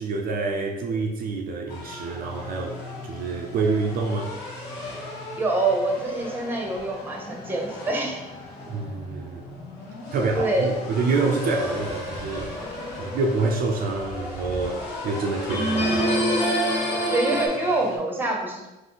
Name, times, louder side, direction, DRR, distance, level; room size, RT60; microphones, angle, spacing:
voice 1, 0.0-4.3 8.7-9.4 10.1-12.5 13.0-16.4, right 3 dB, 60° right, 1 dB, 0.5 m, -27 dB
sound 1, 1.7-18.0, left 2 dB, 75° left, 1.0 m, -36 dB
voice 2, 5.4-8.2 10.3-10.7 17.1-18.7, right 2 dB, 10° right, 0 dB, 0.9 m, -25 dB
sound 2, 11.5-12.1 15.5-17.5, equal, 35° left, 1.4 m, -25 dB
3.9 x 2.7 x 3.9 m, 1.1 s
cardioid pair, 110°, 17 cm